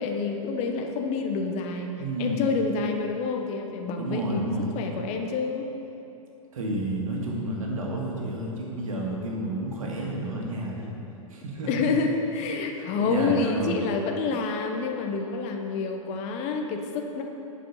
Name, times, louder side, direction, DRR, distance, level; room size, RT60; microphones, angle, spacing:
voice 1, 0.0-1.9 2.2-5.7 11.7-17.2, left 4 dB, 40° left, 3 dB, 1.0 m, -28 dB
voice 2, 1.9-2.5 4.0-4.7 6.5-10.9 11.3-11.9 13.0-13.8, right 1 dB, 70° right, -2 dB, 2.0 m, -30 dB
11.0 x 5.3 x 5.6 m, 2.9 s
figure-of-eight pair, 105°, 18 cm